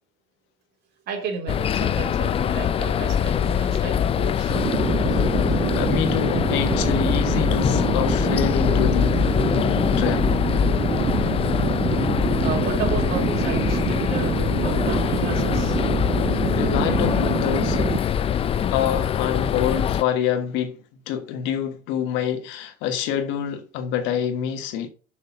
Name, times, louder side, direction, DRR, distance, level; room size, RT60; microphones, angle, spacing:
voice 1, 1.1-4.6 12.4-15.8, right 5 dB, 60° right, 3.6 m, -32 dB
sound 1, 1.5-20.0, left 8 dB, 30° left, 0.4 m, -23 dB
sound 2, 4.5-18.0, right 9 dB, 35° right, 0.5 m, -26 dB
voice 2, 5.1-9.2 10.0-10.3 16.3-17.9 18.7-20.8 21.1-24.9, left 9 dB, 80° left, 1.4 m, -26 dB
6.6 x 5.9 x 5.3 m
cardioid pair, 125°, 19 cm